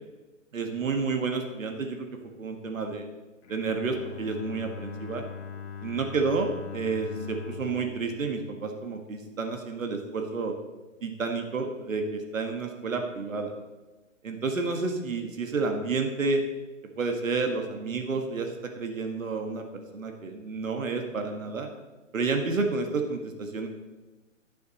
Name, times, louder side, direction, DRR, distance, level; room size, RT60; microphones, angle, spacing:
voice 1, 0.5-2.1 2.4-3.0 3.5-5.2 5.8-10.5 11.0-13.5 14.2-16.4 17.0-21.7 22.1-23.7, right 4 dB, 85° right, 4 dB, 1.7 m, -30 dB
Bowed string instrument, 3.4-9.4, left 6 dB, 55° left, 1.8 m, -42 dB
16.5 x 6.9 x 4.1 m, 1.2 s
hypercardioid pair, 140°, 39 cm